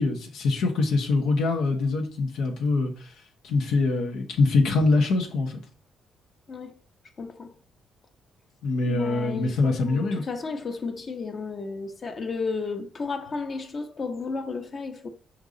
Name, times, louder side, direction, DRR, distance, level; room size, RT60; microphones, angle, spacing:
voice 1, 0.0-3.1 3.4-5.6 8.6-10.2, left 3 dB, 85° left, 1.3 m, -24 dB
voice 2, 6.5-6.8 7.2-7.5 8.9-15.1, left 4 dB, 45° left, 1.0 m, -33 dB
5.4 x 4.6 x 3.9 m
cardioid pair, 90°, 0 cm